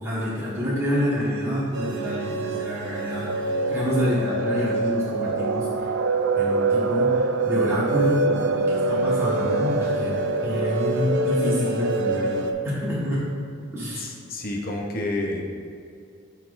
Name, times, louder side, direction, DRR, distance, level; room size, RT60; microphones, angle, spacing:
voice 1, 0.0-5.9 6.4-13.2 13.7-14.1, equal, 10° right, -9 dB, 1.3 m, -27 dB
sound 1, 1.7-12.5, right 3 dB, 55° right, 0.4 m, -25 dB
voice 2, 13.9-15.5, left 2 dB, 45° left, 0 dB, 0.7 m, -29 dB
11.5 x 4.0 x 2.5 m, 2.4 s
head